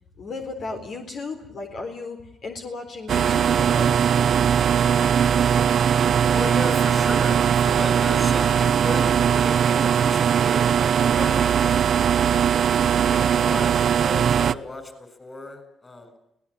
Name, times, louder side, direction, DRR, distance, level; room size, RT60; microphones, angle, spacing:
voice 1, 0.2-4.1, left 3 dB, 60° left, 4 dB, 4.1 m, -35 dB
sound 1, 3.1-14.5, right 8 dB, 60° right, 0.8 m, -20 dB
voice 2, 6.3-11.9 12.7-16.2, left 2 dB, 20° left, 10 dB, 7.2 m, -35 dB
24.5 x 19.0 x 8.7 m, 0.78 s
cardioid pair, 90°, 0 cm